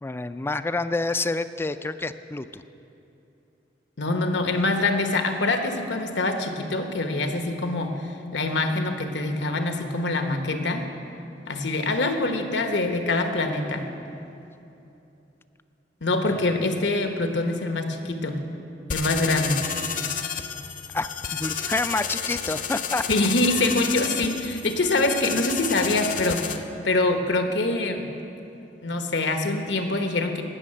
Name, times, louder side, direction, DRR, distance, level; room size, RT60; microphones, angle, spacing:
voice 1, 0.0-2.6 16.5-16.6 20.9-23.0, left 3 dB, 15° left, 11 dB, 0.3 m, -28 dB
voice 2, 4.0-10.9 11.5-13.8 16.0-18.4 18.9-19.7 23.1-26.6 26.8-28.1 28.8-30.4, left 2 dB, 80° left, 6 dB, 1.2 m, -25 dB
sound 1, 18.9-26.6, left 7 dB, 50° left, 0.7 m, -31 dB
18.5 x 6.5 x 7.6 m, 2.8 s
head